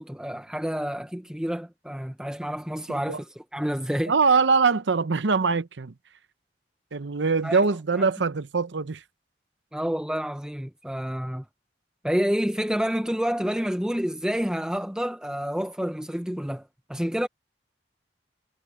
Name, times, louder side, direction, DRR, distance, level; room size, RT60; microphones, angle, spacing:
voice 1, 0.0-4.1 7.4-7.6 8.0-8.1 9.7-11.4 12.0-17.3, equal, 5° right, 0.7 m, -29 dB
voice 2, 2.9-3.2 4.1-5.9 6.9-9.0, right 4 dB, 90° right, 0.8 m, -23 dB
head